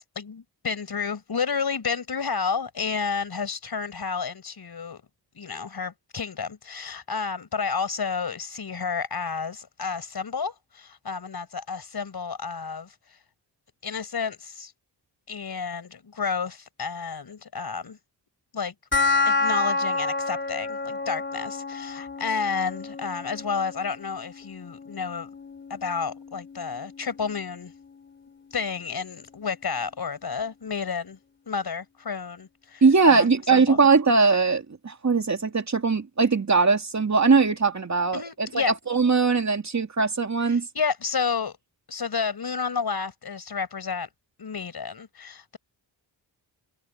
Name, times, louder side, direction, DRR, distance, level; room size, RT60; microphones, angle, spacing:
voice 1, 0.1-5.0 5.3-12.9 13.8-14.7 15.3-18.0 18.5-18.7 19.2-25.3 25.7-27.7 28.5-31.2 31.5-33.8 38.1-38.7 40.5-41.6 41.9-44.1 44.4-45.6, left 5 dB, 60° left, 5.1 m, -31 dB
sound 1, 18.9-29.9, left 3 dB, 25° left, 3.6 m, -31 dB
voice 2, 32.8-40.7, right 4 dB, 40° right, 2.8 m, -21 dB
wide cardioid pair, 90°, 43 cm